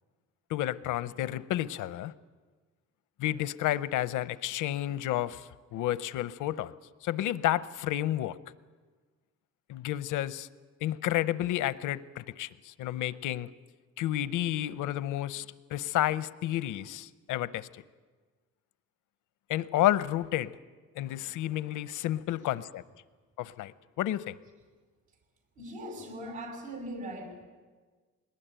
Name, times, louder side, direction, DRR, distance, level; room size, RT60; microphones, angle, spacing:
voice 1, 0.5-2.1 3.2-6.7 7.0-8.4 9.7-10.5 10.8-13.5 14.0-15.5 15.7-17.8 19.5-20.5 21.0-22.8 23.4-24.4, left 13 dB, 85° left, 16 dB, 0.7 m, -31 dB
voice 2, 25.6-27.4, right 1 dB, 85° right, 3 dB, 5.8 m, -40 dB
21.0 x 19.5 x 9.0 m, 1.4 s
cardioid pair, 90°, 30 cm